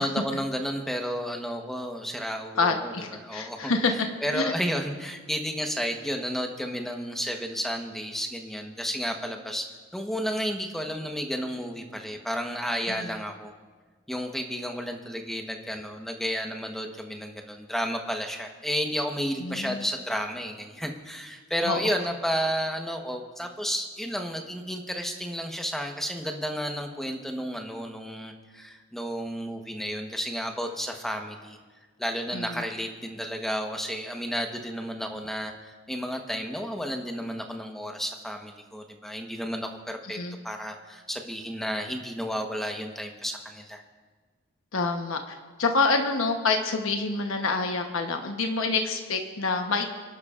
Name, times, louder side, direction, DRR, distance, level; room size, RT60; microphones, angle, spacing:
voice 1, 0.0-9.7 9.9-13.5 14.1-31.6 32.0-40.2 40.4-43.8, equal, ahead, 3 dB, 1.1 m, -32 dB
voice 2, 2.6-3.9 4.3-4.5 12.9-13.1 19.4-19.9 21.6-21.9 32.3-32.6 40.1-40.4 44.7-49.8, left 3 dB, 90° left, 4 dB, 1.0 m, -27 dB
29.0 x 11.5 x 2.5 m, 1.4 s
head